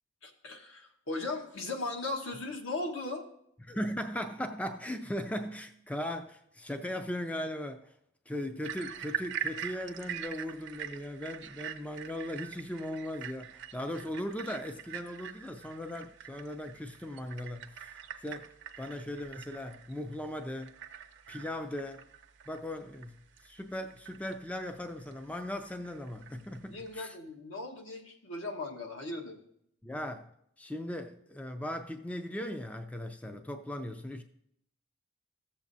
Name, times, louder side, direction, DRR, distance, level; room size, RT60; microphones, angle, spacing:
voice 1, 0.2-3.2 26.7-29.4 33.2-33.4, left 2 dB, 75° left, 1.3 m, -38 dB
voice 2, 3.6-7.9 8.3-18.5 18.8-20.7 21.3-22.0 22.5-23.1 23.4-27.2 29.8-30.3 30.6-34.2, left 1 dB, 5° left, 0.3 m, -38 dB
sound 1, 8.6-27.0, right 8 dB, 60° right, 0.6 m, -44 dB
15.5 x 7.1 x 2.6 m
head